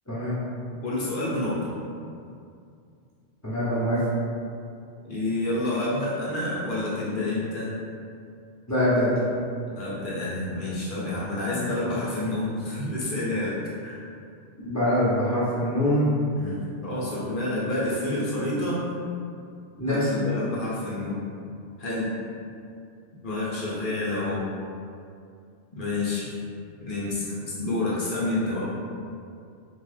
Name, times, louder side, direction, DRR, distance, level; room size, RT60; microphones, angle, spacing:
voice 1, 0.8-1.7 5.0-7.7 9.7-14.0 16.4-18.9 19.9-21.2 21.8-22.2 23.2-24.4 25.7-26.4 26.8-28.8, left 2 dB, 50° left, -8 dB, 0.9 m, -29 dB
voice 2, 3.4-4.0 8.7-9.1 14.6-16.0 19.8-20.1, equal, 20° left, -10 dB, 0.6 m, -24 dB
2.9 x 2.3 x 3.2 m, 2.4 s
omnidirectional pair, 1.2 m